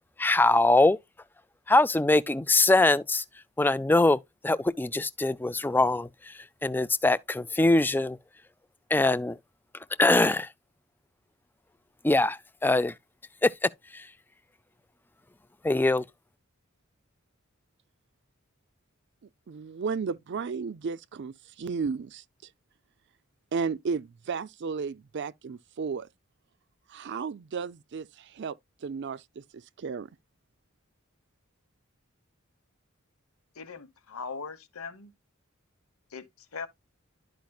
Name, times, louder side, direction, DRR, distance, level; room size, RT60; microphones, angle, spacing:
voice 1, 0.2-1.0 1.7-3.2 3.6-4.2 4.4-6.1 6.6-8.2 8.9-9.4 10.0-10.5 12.0-12.9 13.4-14.0 15.6-16.0, left 2 dB, 10° left, 0.4 m, -23 dB
voice 2, 19.5-22.5 23.5-26.1 26.9-30.1, right 5 dB, 55° right, 0.4 m, -34 dB
voice 3, 33.5-35.1 36.1-36.7, left 5 dB, 90° left, 1.1 m, -40 dB
11.5 x 5.1 x 2.3 m
head